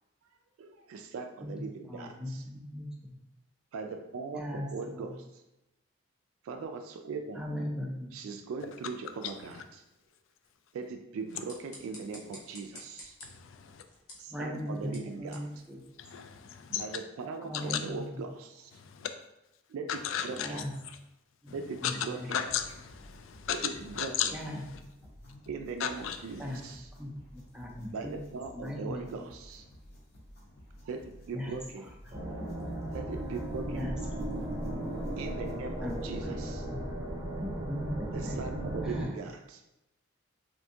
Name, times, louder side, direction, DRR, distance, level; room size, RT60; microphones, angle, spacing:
voice 1, 0.6-2.4 3.7-5.4 6.4-7.4 8.1-9.8 10.7-13.2 14.2-15.4 16.7-18.7 19.7-20.6 21.5-22.4 23.5-24.3 25.5-26.9 27.9-29.7 30.8-31.9 32.9-33.9 35.2-36.7 38.1-39.6, right 4 dB, 85° right, 5 dB, 0.3 m, -40 dB
voice 2, 1.9-3.2 4.3-5.2 7.3-8.1 14.3-15.8 17.4-18.2 20.4-20.7 21.4-21.5 21.8-22.4 24.3-24.6 26.4-26.6 27.0-28.2 28.5-29.2 31.3-31.6 33.7-33.9 35.8-36.0 36.2-36.4 36.7-36.8 37.4-38.4 38.8-39.1, left 1 dB, 5° right, -3 dB, 0.4 m, -38 dB
sound 1, 11.2-16.5, left 1 dB, 85° left, 0.9 m, -53 dB
voice 3, 13.2-13.8 16.0-16.9 17.5-17.8 18.8-19.1 19.9-20.6 21.5-21.6 21.8-22.0 22.3-23.7 24.0-24.3 25.8-26.2, left 9 dB, 70° left, 8 dB, 0.3 m, -34 dB
sound 2, 22.5-36.1, equal, 50° left, 0.8 m, -53 dB
sound 3, 32.1-39.0, right 1 dB, 25° right, 0.7 m, -36 dB
3.4 x 2.5 x 2.7 m, 0.92 s
head